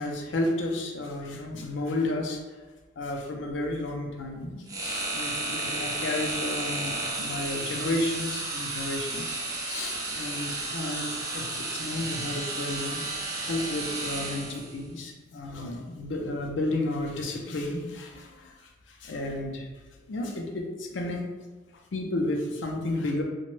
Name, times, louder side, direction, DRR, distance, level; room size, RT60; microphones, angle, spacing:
voice 1, 0.0-2.4 3.0-11.1 11.3-13.1 13.4-19.7 20.1-21.2 21.9-23.2, left 2 dB, 85° left, 1 dB, 0.5 m, -32 dB
sound 1, 4.7-14.8, right 2 dB, 20° right, 0.4 m, -33 dB
2.9 x 2.2 x 3.1 m, 1.2 s
head